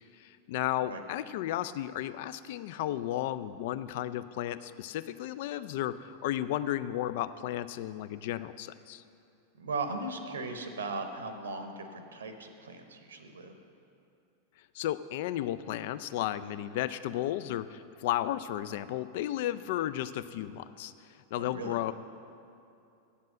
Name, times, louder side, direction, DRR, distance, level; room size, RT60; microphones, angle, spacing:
voice 1, 0.2-9.0 14.7-20.9 21.3-21.9, left 13 dB, 50° left, 14 dB, 0.3 m, -33 dB
voice 2, 9.6-13.6 21.4-21.8, right 3 dB, 70° right, 7 dB, 0.8 m, -38 dB
8.3 x 7.4 x 7.5 m, 2.7 s
figure-of-eight pair, 90°, 0 cm